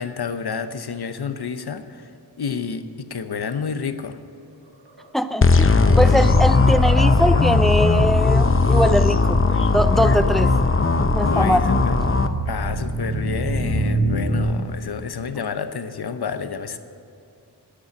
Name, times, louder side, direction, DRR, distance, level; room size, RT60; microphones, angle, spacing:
voice 1, 0.0-2.1 2.4-4.2 10.3-10.4 11.2-12.0 12.4-16.8, left 6 dB, 65° left, 9 dB, 0.9 m, -29 dB
sound 1, 4.6-5.1 5.5-7.6, right 2 dB, 75° right, 1.6 m, -36 dB
voice 2, 5.1-10.5 11.1-11.6, equal, ahead, 11 dB, 0.6 m, -22 dB
sound 2, 5.4-12.3, left 3 dB, 30° left, 0.7 m, -17 dB
sound 3, 10.0-14.4, right 1 dB, 40° right, 2.6 m, -28 dB
10.0 x 8.6 x 8.1 m, 2.7 s
cardioid pair, 45°, 41 cm